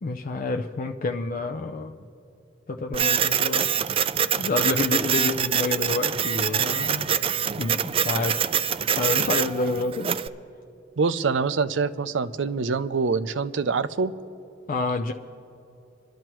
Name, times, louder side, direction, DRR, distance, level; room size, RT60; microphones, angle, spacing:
voice 1, 0.0-2.0 2.7-3.7 4.4-7.1 7.6-8.4 9.0-10.2 14.7-15.1, left 3 dB, 45° left, 3 dB, 0.5 m, -28 dB
Printer, 2.9-10.3, right 8 dB, 30° right, 0.3 m, -25 dB
voice 2, 11.0-14.1, right 4 dB, 80° right, 13 dB, 0.5 m, -25 dB
25.5 x 12.5 x 3.0 m, 2.8 s
head